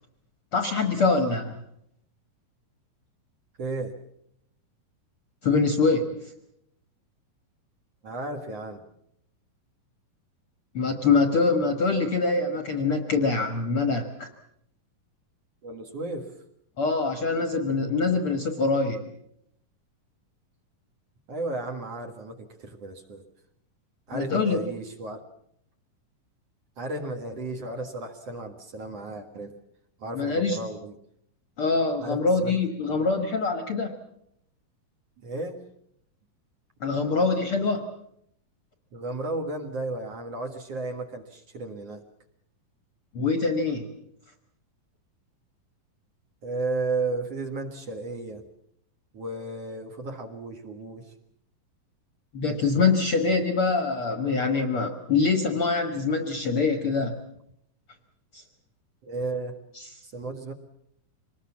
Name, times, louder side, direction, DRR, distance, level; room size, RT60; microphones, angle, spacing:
voice 1, 0.5-1.6 5.4-6.2 10.7-14.3 16.8-19.0 24.1-24.6 30.1-30.6 31.6-34.0 36.8-37.9 43.1-43.9 52.3-57.2 58.3-58.4 59.8-59.9, left 4 dB, 50° left, 6 dB, 1.8 m, -24 dB
voice 2, 3.6-3.9 8.0-8.8 15.6-16.3 21.3-23.2 24.1-25.2 26.8-29.6 30.0-30.9 32.0-32.6 32.9-33.1 35.2-35.6 38.9-42.0 46.4-48.4 49.1-51.1 59.0-59.6 60.0-60.5, right 2 dB, 50° right, 4 dB, 2.3 m, -34 dB
25.0 x 20.0 x 7.2 m, 0.73 s
omnidirectional pair, 4.2 m